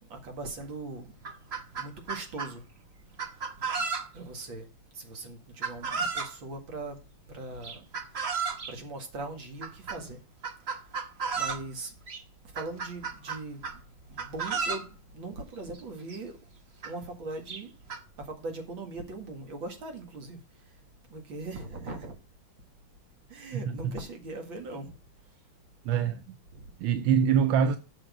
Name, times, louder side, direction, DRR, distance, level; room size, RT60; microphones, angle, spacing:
voice 1, 0.0-1.2 1.8-2.6 3.2-3.3 3.8-3.9 4.1-4.7 4.9-7.0 7.3-7.8 8.7-10.2 10.8-10.9 11.4-11.9 12.5-13.6 14.1-16.4 16.8-17.7 18.2-20.8 21.1-22.2 23.3-25.0 25.3-25.4 26.5-26.7, right 2 dB, 70° right, 2.6 m, -40 dB
Chicken rooster, 0.6-0.7 1.1-2.5 3.2-4.3 5.6-6.3 7.6-8.7 9.6-10.0 10.4-11.7 12.1-12.2 12.6-13.8 14.2-14.9 15.8-15.9 16.1-16.2 16.8-16.9 17.5-18.0, right 5 dB, 40° right, 1.0 m, -33 dB
voice 2, 23.5-24.0 25.8-26.2 26.8-27.8, right 7 dB, 90° right, 1.5 m, -24 dB
7.9 x 6.4 x 6.0 m
omnidirectional pair, 2.2 m